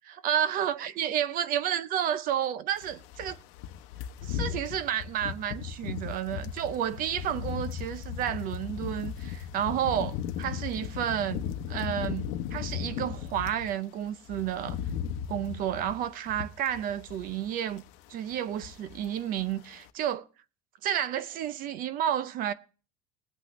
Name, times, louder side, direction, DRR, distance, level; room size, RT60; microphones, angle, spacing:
voice 1, 0.0-3.4 4.2-14.8 15.3-17.8 18.1-20.3 20.8-22.5, right 10 dB, 55° right, 0.7 m, -31 dB
sound 1, 2.8-13.7 14.1-17.5 17.7-18.0 18.3-19.1 19.4-19.6, left 9 dB, 85° left, 1.0 m, -37 dB
20.5 x 8.7 x 3.1 m
cardioid pair, 140°, 18 cm